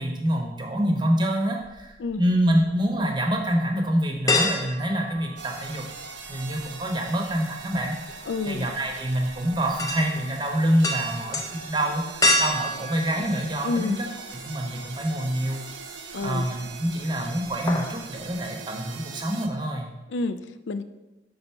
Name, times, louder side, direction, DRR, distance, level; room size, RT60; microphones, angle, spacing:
voice 1, 0.0-5.8 6.3-8.2 8.5-11.4 11.7-14.0 14.4-15.6 16.2-19.9, equal, 25° right, 1 dB, 0.8 m, -26 dB
sound 1, 1.6-2.6 3.1-3.2 4.3-6.0 6.3-14.2 14.6-14.7 16.1-16.7 17.0-17.2 17.5-18.0 18.3-18.4, left 2 dB, 20° left, 0.5 m, -29 dB
sound 2, 5.4-19.5, right 5 dB, 75° right, 0.7 m, -41 dB
voice 2, 8.2-8.7 13.6-14.0 16.1-16.5 20.1-20.8, left 3 dB, 80° left, 11 dB, 0.4 m, -29 dB
5.7 x 3.9 x 5.5 m, 1.0 s
head